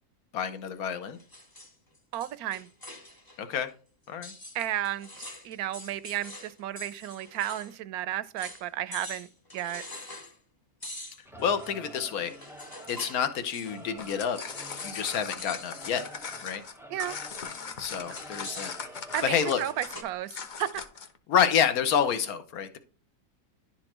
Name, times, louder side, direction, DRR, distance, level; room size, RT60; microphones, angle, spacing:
voice 1, 0.3-1.2 3.4-3.7 4.1-4.3 11.4-12.3 12.9-14.4 14.8-16.1 16.4-16.6 17.8-18.7 19.2-19.6 21.3-22.8, left 8 dB, 75° left, 1.3 m, -28 dB
sound 1, 1.2-3.4 3.7-3.8 4.2-7.7 8.0-8.1 8.4-8.7 8.9-10.4 10.8-13.3 13.5-13.9 14.5-15.1 15.3-15.7 16.0-16.4 17.9-20.0, left 1 dB, 20° left, 0.8 m, -45 dB
voice 2, 2.1-2.7 4.5-9.3 9.5-9.8 16.9-17.2 19.1-20.8, right 12 dB, 85° right, 1.1 m, -33 dB
Singing / Musical instrument, 11.2-20.1, right 1 dB, 5° right, 0.4 m, -48 dB
sound 2, 13.8-21.2, left 6 dB, 50° left, 0.6 m, -40 dB
11.0 x 4.4 x 2.9 m
omnidirectional pair, 1.6 m